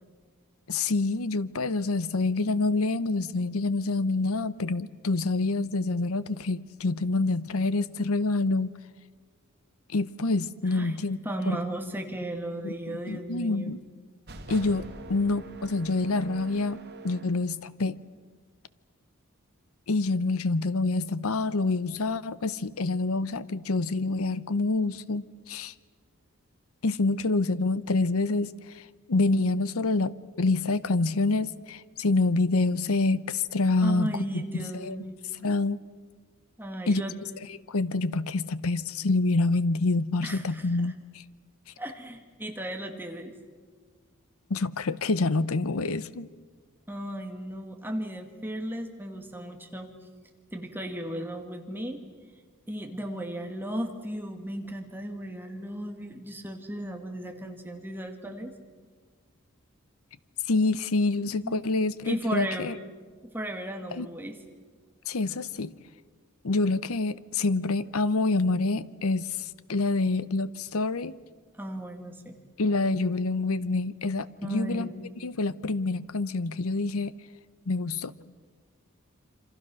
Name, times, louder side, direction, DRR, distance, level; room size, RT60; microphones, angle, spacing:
voice 1, 0.7-8.8 9.9-11.2 11.5-11.6 12.6-13.8 14.5-18.0 19.9-25.7 26.8-35.0 35.4-35.8 36.9-37.0 37.5-41.2 44.5-46.3 60.5-62.8 63.9-64.1 65.1-65.7 66.4-71.1 72.6-74.9 75.2-77.1 77.7-78.1, left 3 dB, 80° left, 16 dB, 0.8 m, -27 dB
voice 2, 10.7-11.0 11.2-13.8 33.8-35.2 36.6-37.2 40.2-40.9 41.8-43.3 46.9-49.9 50.5-52.0 52.7-58.5 61.3-61.6 62.0-62.8 63.3-64.4 71.6-72.4 74.4-74.9, right 1 dB, 10° right, 4 dB, 2.0 m, -35 dB
sound 1, 14.3-17.4, right 2 dB, 50° right, 2.2 m, -44 dB
27.5 x 25.5 x 6.3 m, 1.5 s
head